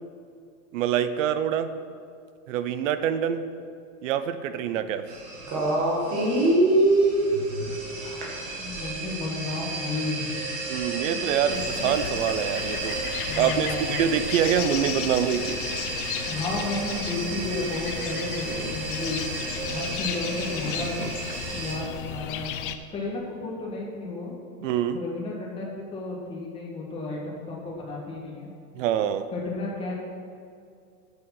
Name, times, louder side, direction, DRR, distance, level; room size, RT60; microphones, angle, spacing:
voice 1, 0.7-1.7 2.5-3.4 4.0-5.1 10.7-13.1 13.4-15.6 18.5-18.7 21.0-21.1 24.6-25.0 28.7-29.3, right 9 dB, 55° right, 12 dB, 0.7 m, -26 dB
sound 1, 5.1-21.7, right 2 dB, 30° right, 2.1 m, -29 dB
voice 2, 8.6-10.3 11.1-11.9 13.2-14.0 16.3-20.9 21.5-22.6 22.9-24.3 24.9-28.5 29.3-29.9, left 2 dB, 10° left, -3 dB, 1.6 m, -33 dB
sound 2, 11.5-22.8, left 10 dB, 40° left, 0.4 m, -35 dB
9.9 x 7.3 x 5.9 m, 2.4 s
supercardioid pair, 165°, 45 cm